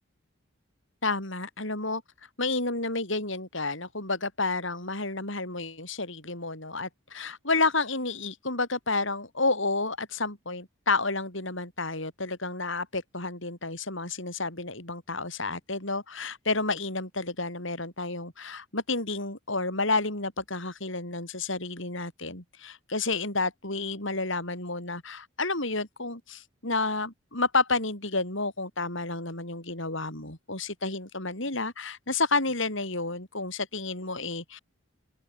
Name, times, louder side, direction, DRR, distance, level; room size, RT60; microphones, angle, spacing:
voice 1, 1.0-2.0 2.4-34.6, left 3 dB, 60° left, 6.1 m, -30 dB
open air
head